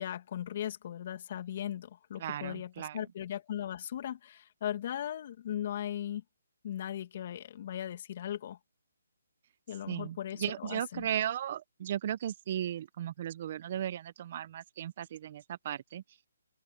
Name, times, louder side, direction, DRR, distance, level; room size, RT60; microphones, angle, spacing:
voice 1, 0.0-6.2 6.6-8.6 9.7-11.1, left 11 dB, 45° left, 2.5 m, -38 dB
voice 2, 2.2-3.1 9.9-16.0, right 10 dB, 40° right, 0.9 m, -36 dB
open air
hypercardioid pair, 155°, 0 cm